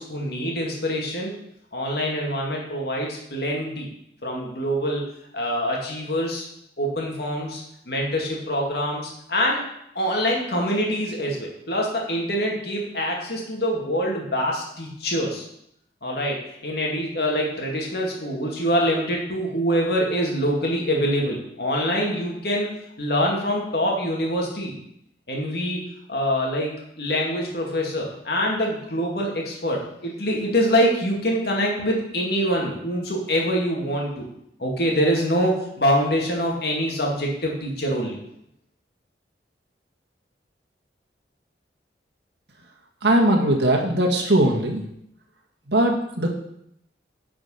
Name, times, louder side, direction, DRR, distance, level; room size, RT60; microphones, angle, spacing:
voice 1, 0.0-1.3 1.7-3.9 4.2-5.1 5.3-6.5 6.8-9.6 9.9-15.4 16.0-22.7 23.0-24.7 25.3-25.8 26.1-34.3 34.6-38.2, equal, 55° left, -1 dB, 2.3 m, -25 dB
voice 2, 43.0-44.8 45.7-46.3, right 1 dB, 65° right, 1 dB, 1.6 m, -20 dB
9.9 x 5.0 x 5.7 m, 0.74 s
head